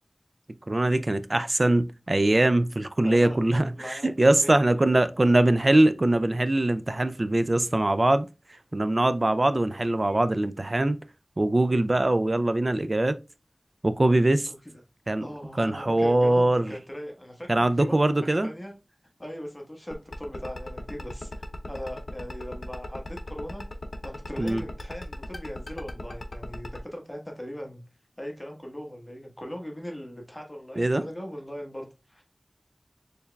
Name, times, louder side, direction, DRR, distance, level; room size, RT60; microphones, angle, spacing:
voice 1, 0.7-8.3 8.7-11.0 11.4-13.2 13.8-14.5 15.1-15.3 15.6-16.7 17.5-18.5 24.4-24.6 30.8-31.0, right 1 dB, 50° right, 0.3 m, -22 dB
voice 2, 3.0-3.4 3.7-4.9 14.5-14.6 15.2-18.0 18.4-18.7 19.2-23.6 24.0-27.8 28.2-32.2, equal, 20° left, 1.1 m, -39 dB
sound 1, 19.9-26.8, left 2 dB, 75° left, 0.6 m, -38 dB
4.5 x 3.3 x 2.2 m
wide cardioid pair, 40°, 0 cm